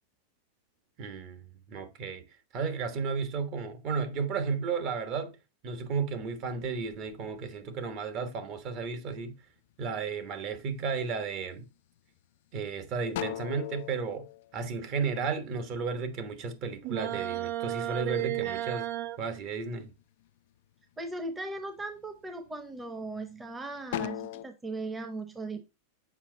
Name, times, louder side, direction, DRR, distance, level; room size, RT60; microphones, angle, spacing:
voice 1, 1.0-2.2 2.5-5.3 5.6-9.4 9.8-11.7 12.5-14.3 14.5-18.9 19.2-19.9, right 5 dB, 45° right, 1.3 m, -33 dB
sound 1, 6.2-8.1 8.6-9.3 9.8-10.4 10.8-11.7 12.2-12.3 12.6-15.5 15.9-18.2 18.5-19.6 20.0-20.6 21.1-21.3 21.8-23.4 23.8-24.5, left 13 dB, 65° left, 0.3 m, -40 dB
sound 2, 16.8-19.2, right 13 dB, 60° right, 0.6 m, -33 dB
voice 2, 21.0-25.6, right 2 dB, 10° right, 0.9 m, -38 dB
7.2 x 4.8 x 3.8 m
hypercardioid pair, 125°, 0 cm